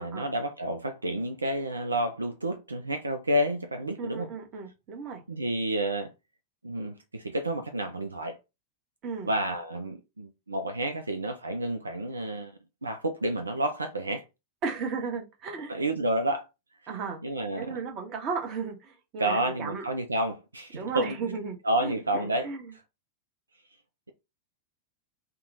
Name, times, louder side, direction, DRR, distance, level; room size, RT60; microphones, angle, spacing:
voice 1, 0.0-4.3 5.3-6.1 6.6-8.4 9.2-12.5 12.8-14.2 15.7-16.5 17.2-17.8 19.2-21.2 21.6-22.5, right 1 dB, 80° right, 0.3 m, -30 dB
voice 2, 4.0-5.2 9.0-9.3 14.6-15.8 16.9-17.2 17.5-19.8 20.7-22.7, right 5 dB, 35° right, 0.9 m, -35 dB
2.8 x 2.1 x 3.9 m
figure-of-eight pair, 90°, 0 cm